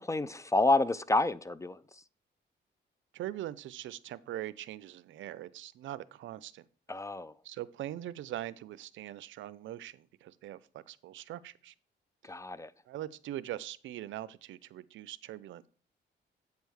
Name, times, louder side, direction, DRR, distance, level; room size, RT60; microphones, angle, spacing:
voice 1, 0.0-1.8 6.9-7.3 12.3-12.7, left 2 dB, 15° left, 0.3 m, -29 dB
voice 2, 3.1-6.6 7.4-11.7 12.9-15.7, right 13 dB, 80° right, 0.5 m, -42 dB
8.2 x 3.4 x 6.3 m
cardioid pair, 90°, 19 cm